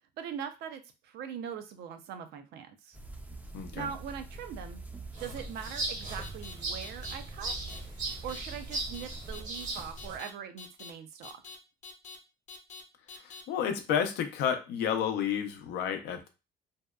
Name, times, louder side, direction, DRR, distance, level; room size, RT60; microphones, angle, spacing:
voice 1, 0.2-3.0 3.7-4.8 5.2-7.8 8.2-11.3, right 8 dB, 75° right, 8 dB, 0.4 m, -41 dB
sound 1, 2.9-9.4, right 2 dB, 10° right, 0.4 m, -45 dB
voice 2, 3.5-3.9 13.2-16.3, left 8 dB, 85° left, 6 dB, 0.5 m, -31 dB
sound 2, 5.1-10.2, right 2 dB, 45° right, 0.8 m, -38 dB
sound 3, 6.2-6.5 6.8-7.1 7.5-7.8 8.1-8.4 8.7-9.0 9.3-9.6 10.0-10.3 10.6-10.9 11.2-11.5 11.8-12.2 12.5-12.8 13.1-13.4, left 4 dB, 40° left, 0.6 m, -46 dB
2.7 x 2.1 x 2.3 m, 0.28 s
cardioid pair, 110°, 17 cm